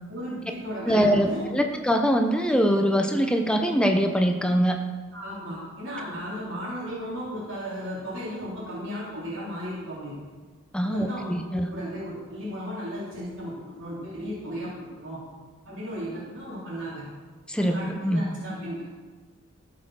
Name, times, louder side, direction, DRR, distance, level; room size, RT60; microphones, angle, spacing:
voice 1, 0.1-1.4 5.1-10.1 10.8-15.2 15.6-17.0 17.6-18.8, equal, 60° right, -11 dB, 3.5 m, -35 dB
voice 2, 0.9-4.8 10.7-11.7 17.5-18.2, equal, 5° left, 4 dB, 0.7 m, -23 dB
14.5 x 6.6 x 6.2 m, 1.4 s
head